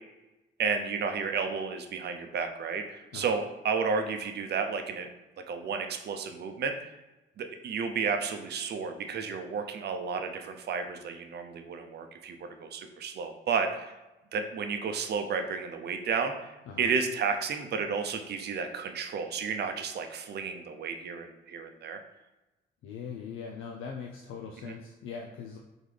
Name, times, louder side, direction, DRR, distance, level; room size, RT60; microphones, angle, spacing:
voice 1, 0.6-5.1 5.5-6.7 7.4-13.9 14.3-16.5 16.8-22.0 24.7-24.8, right 5 dB, 55° right, 6 dB, 0.6 m, -32 dB
voice 2, 22.8-25.6, left 6 dB, 85° left, 0 dB, 0.5 m, -41 dB
3.9 x 3.8 x 3.3 m, 1.0 s
cardioid pair, 90°, 20 cm